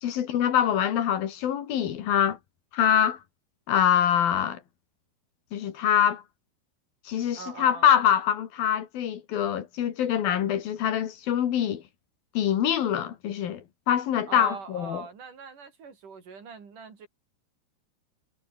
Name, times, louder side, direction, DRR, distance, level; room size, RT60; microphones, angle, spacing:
voice 1, 0.0-2.4 2.7-3.2 3.7-4.6 5.5-6.2 7.1-11.8 12.4-15.0, left 9 dB, 70° left, 3.6 m, -24 dB
voice 2, 7.4-7.9 14.3-17.1, right 5 dB, 55° right, 5.3 m, -42 dB
omnidirectional pair, 4.5 m